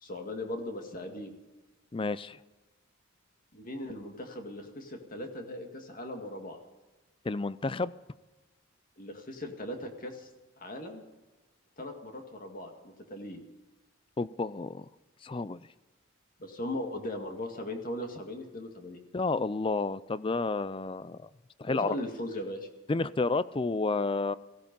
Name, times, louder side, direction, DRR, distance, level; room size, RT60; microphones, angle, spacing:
voice 1, 0.0-1.3 3.5-6.6 9.0-10.3 10.6-11.0 11.8-13.4 16.4-19.0 21.7-22.7, left 1 dB, 40° left, 4 dB, 2.1 m, -38 dB
voice 2, 1.9-2.4 7.2-7.9 14.2-14.9 15.2-15.7 19.1-21.3 21.6-22.0 22.9-24.4, left 3 dB, 25° left, 17 dB, 0.4 m, -30 dB
17.5 x 15.5 x 5.4 m, 1.2 s
head